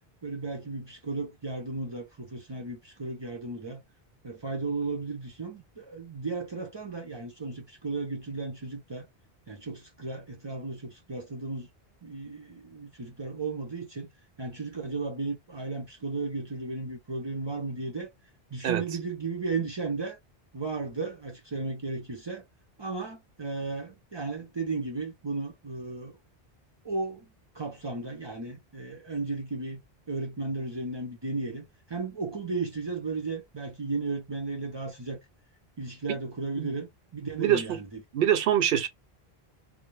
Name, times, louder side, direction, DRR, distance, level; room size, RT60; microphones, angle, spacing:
voice 1, 0.2-3.8 4.2-9.1 9.5-11.7 12.0-14.1 14.4-18.1 18.5-20.2 20.5-22.4 22.8-26.2 26.8-27.3 27.5-29.8 30.1-35.2 35.8-38.0, right 3 dB, 35° right, 0.4 m, -34 dB
voice 2, 37.4-37.8 38.1-38.9, right 10 dB, 70° right, 0.8 m, -24 dB
2.3 x 2.0 x 3.0 m
omnidirectional pair, 1.0 m